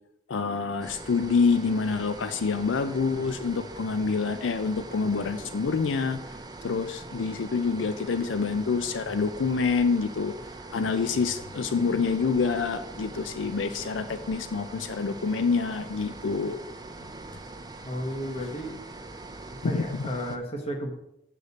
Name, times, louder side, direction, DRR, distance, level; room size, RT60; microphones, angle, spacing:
voice 1, 0.3-6.2 6.6-10.3 10.7-16.6 19.6-20.1, left 4 dB, 90° left, 10 dB, 0.5 m, -27 dB
sound 1, 0.8-20.4, right 2 dB, 20° right, 0.5 m, -42 dB
voice 2, 17.8-18.8 19.6-20.9, equal, 35° left, 2 dB, 1.2 m, -33 dB
6.7 x 6.5 x 4.1 m, 0.83 s
head